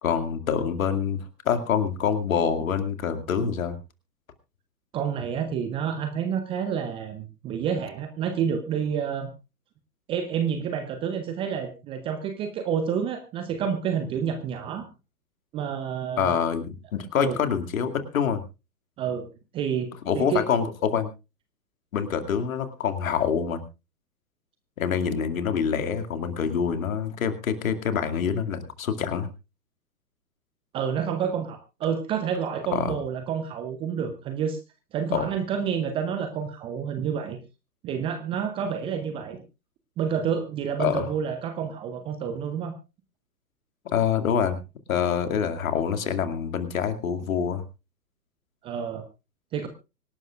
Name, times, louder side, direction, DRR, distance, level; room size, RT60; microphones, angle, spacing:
voice 1, 0.0-3.8 16.2-18.4 20.1-21.1 21.9-23.6 24.8-29.3 32.7-32.9 35.1-35.3 40.8-41.1 43.8-44.6 44.9-47.6, left 7 dB, 55° left, 8 dB, 2.4 m, -26 dB
voice 2, 4.9-9.3 10.1-14.9 15.5-16.4 17.2-17.4 19.0-19.3 19.5-20.4 30.7-34.6 34.9-37.4 37.8-39.4 40.0-42.7 48.6-49.0 49.5-49.7, right 7 dB, 10° right, 8 dB, 0.7 m, -29 dB
25.0 x 11.5 x 2.4 m, 0.29 s
figure-of-eight pair, 125°, 49 cm